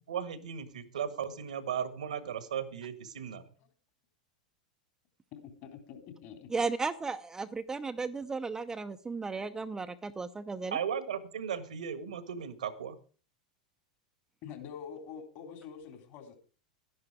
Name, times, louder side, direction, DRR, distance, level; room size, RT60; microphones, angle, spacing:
voice 1, 0.1-3.5 10.7-13.0, right 8 dB, 75° right, 13 dB, 1.6 m, -36 dB
voice 2, 5.3-6.5 9.2-9.7 14.4-16.4, left 7 dB, 50° left, 6 dB, 3.5 m, -46 dB
voice 3, 6.5-10.8, right 4 dB, 15° right, 9 dB, 0.7 m, -35 dB
12.5 x 10.5 x 4.9 m, 0.38 s
figure-of-eight pair, 90°, 4 cm